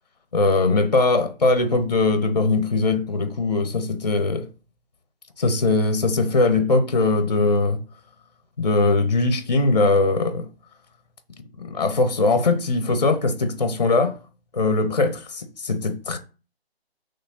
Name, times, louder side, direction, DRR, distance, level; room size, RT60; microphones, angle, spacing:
voice 1, 0.3-4.5 5.4-7.8 8.6-10.5 11.6-14.2 14.5-16.2, left 3 dB, 40° left, 0.6 m, -21 dB
4.1 x 3.1 x 4.1 m
figure-of-eight pair, 160°, 32 cm